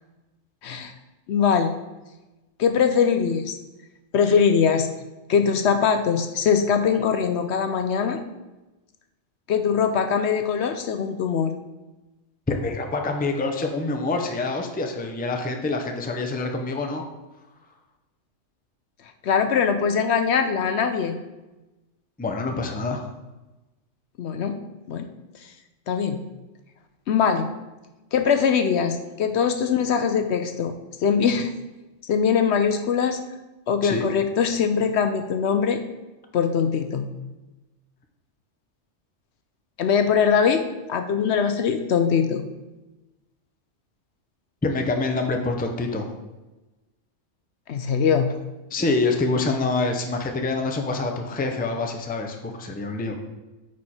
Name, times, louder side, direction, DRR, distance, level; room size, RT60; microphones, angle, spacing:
voice 1, 1.3-1.7 2.6-3.5 4.1-4.9 5.3-8.2 9.5-11.5 19.2-21.1 24.2-24.6 24.9-25.1 25.9-26.2 27.1-27.5 28.1-30.7 31.0-31.5 32.1-33.2 33.7-35.8 36.3-37.1 39.8-40.6 40.9-42.4 47.7-48.3, left 6 dB, 65° left, 7 dB, 0.8 m, -22 dB
voice 2, 12.5-17.0 22.2-23.0 33.8-34.1 44.6-46.1 48.7-53.1, left 3 dB, 10° left, 4 dB, 0.5 m, -26 dB
8.8 x 4.8 x 4.3 m, 1.1 s
omnidirectional pair, 1.3 m